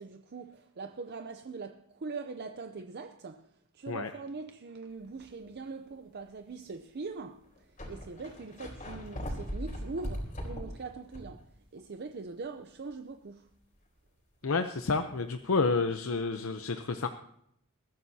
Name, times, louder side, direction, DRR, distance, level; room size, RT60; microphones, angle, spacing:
voice 1, 0.0-13.5, right 4 dB, 50° right, 0.6 m, -42 dB
sound 1, 5.2-5.5 6.2-6.3 7.2-7.3 7.4-11.4 11.8-11.9 15.4-15.5, equal, 40° left, 4.1 m, -39 dB
voice 2, 14.4-17.1, left 4 dB, 70° left, 0.7 m, -29 dB
21.5 x 14.0 x 2.8 m
head